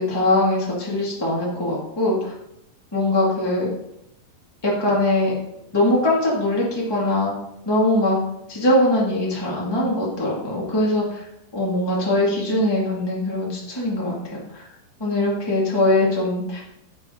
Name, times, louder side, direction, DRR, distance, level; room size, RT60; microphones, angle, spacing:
voice 1, 0.0-2.3 2.9-3.7 4.6-5.3 5.7-7.3 7.6-8.2 8.5-11.2 11.5-14.6 15.0-16.6, left 1 dB, 35° left, -4 dB, 0.4 m, -21 dB
9.3 x 6.3 x 3.8 m, 0.80 s
omnidirectional pair, 4.7 m